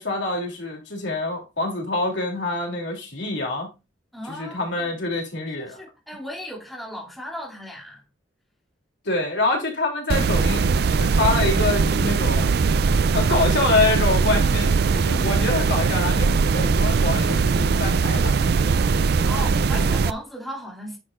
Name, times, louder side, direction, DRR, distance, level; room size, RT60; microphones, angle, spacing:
voice 1, 0.0-3.7 4.3-5.8 9.0-12.5 13.1-18.5, left 2 dB, 65° left, 2.9 m, -26 dB
voice 2, 4.1-5.0 5.5-8.0 15.1-15.5 19.2-21.0, equal, ahead, 2.7 m, -36 dB
sound 1, 10.1-20.1, right 4 dB, 50° right, 0.4 m, -20 dB
9.9 x 6.4 x 2.4 m
head